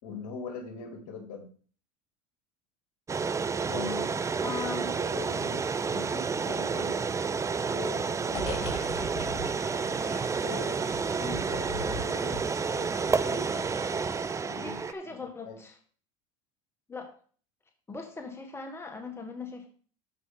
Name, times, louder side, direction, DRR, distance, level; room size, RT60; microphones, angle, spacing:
voice 1, 0.0-1.5 3.7-4.1 5.0-5.6 5.9-7.0 7.7-8.7 10.4-10.8 11.5-12.4 12.7-13.6 14.4-14.8 15.0-15.1 15.4-15.6, left 4 dB, 65° left, 3 dB, 2.8 m, -41 dB
sound 1, 3.1-14.9, right 5 dB, 15° right, 0.5 m, -30 dB
voice 2, 4.4-4.9 11.2-11.5 12.2-12.4 14.5-15.8 16.9-17.1 17.9-19.7, left 4 dB, 15° left, 3 dB, 1.7 m, -39 dB
sound 2, 8.3-14.3, left 1 dB, 30° left, 4.6 m, -41 dB
13.5 x 5.2 x 3.8 m, 0.44 s
supercardioid pair, 100°, 17 cm